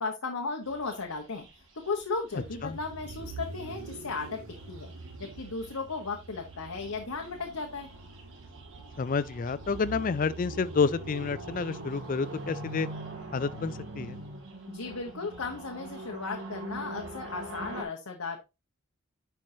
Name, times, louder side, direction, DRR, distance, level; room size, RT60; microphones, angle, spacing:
voice 1, 0.0-1.5 1.8-4.4 4.7-4.9 5.2-7.9 14.7-18.4, left 4 dB, 85° left, 1.1 m, -35 dB
sound 1, 0.6-17.8, right 2 dB, 65° right, 2.7 m, -46 dB
voice 2, 2.3-2.8 9.0-12.9 13.3-14.2, left 5 dB, 40° left, 0.3 m, -29 dB
sound 2, 2.4-14.5, right 2 dB, 90° right, 1.0 m, -43 dB
10.5 x 4.6 x 2.8 m
head